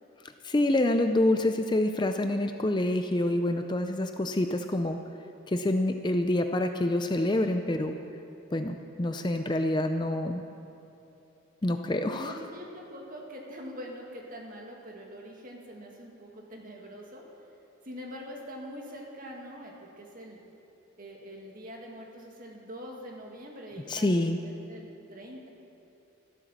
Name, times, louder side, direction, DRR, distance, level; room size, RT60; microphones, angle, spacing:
voice 1, 0.4-5.0 5.5-7.9 8.5-10.4 11.6-12.3 23.9-24.4, left 1 dB, 20° left, 6 dB, 0.4 m, -27 dB
voice 2, 12.1-17.2 17.8-20.4 21.0-25.5, equal, 40° right, -1 dB, 2.1 m, -44 dB
13.0 x 12.5 x 7.2 m, 2.9 s
head